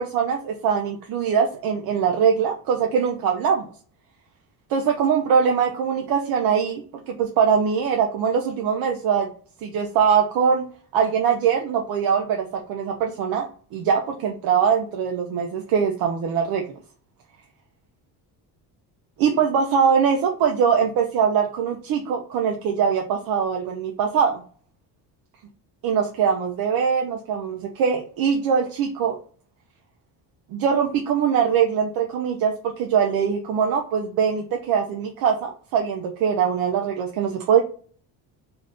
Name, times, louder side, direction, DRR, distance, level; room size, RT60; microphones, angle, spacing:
voice 1, 0.0-3.7 4.7-9.3 9.6-10.6 10.9-16.6 19.2-24.4 25.8-29.2 30.5-37.6, right 7 dB, 60° right, 3 dB, 0.5 m, -22 dB
2.7 x 2.5 x 3.4 m, 0.43 s
cardioid pair, 145°, 40 cm